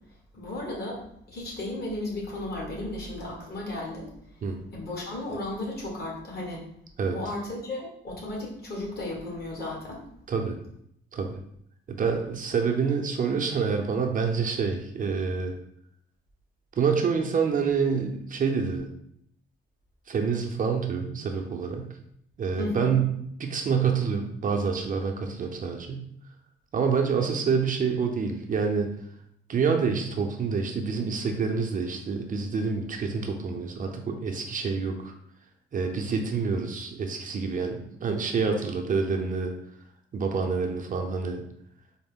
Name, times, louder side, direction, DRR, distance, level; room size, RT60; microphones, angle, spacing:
voice 1, 0.3-1.0 1.3-4.1 4.7-6.6 7.1-10.0 22.6-22.9, left 1 dB, 55° left, -2 dB, 1.5 m, -34 dB
voice 2, 11.9-15.5 16.8-18.9 20.1-21.9 22.4-23.1 23.4-26.0 26.7-28.9 29.5-35.1 35.7-39.5 40.1-41.4, right 5 dB, 40° right, 3 dB, 0.5 m, -27 dB
4.2 x 2.0 x 3.6 m, 0.73 s
cardioid pair, 90°, 20 cm